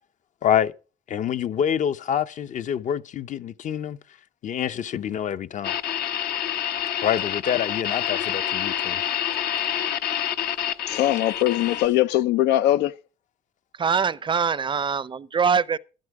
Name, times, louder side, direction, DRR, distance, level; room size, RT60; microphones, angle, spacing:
voice 1, 0.4-0.7 1.1-4.0 4.4-5.8 7.0-9.0, left 9 dB, 45° left, 0.7 m, -26 dB
sound 1, 5.6-11.9, left 10 dB, 70° left, 1.0 m, -27 dB
voice 2, 10.9-12.9, left 14 dB, 85° left, 0.6 m, -21 dB
voice 3, 13.8-15.8, right 6 dB, 30° right, 0.5 m, -23 dB
12.5 x 12.0 x 4.7 m
cardioid pair, 110°, 17 cm